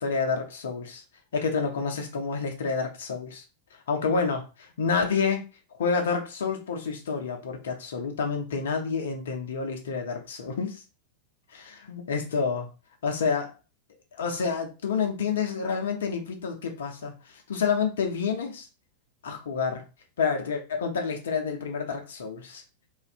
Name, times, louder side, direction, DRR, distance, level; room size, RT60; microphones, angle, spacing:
voice 1, 0.0-1.0 1.3-3.4 3.9-4.4 4.8-5.5 5.8-10.8 11.5-12.7 13.0-13.5 14.1-17.1 17.5-18.7 19.2-19.8 20.2-22.6, left 5 dB, 60° left, 4 dB, 0.6 m, -28 dB
2.6 x 2.4 x 2.2 m, 0.31 s
figure-of-eight pair, 90°, 0 cm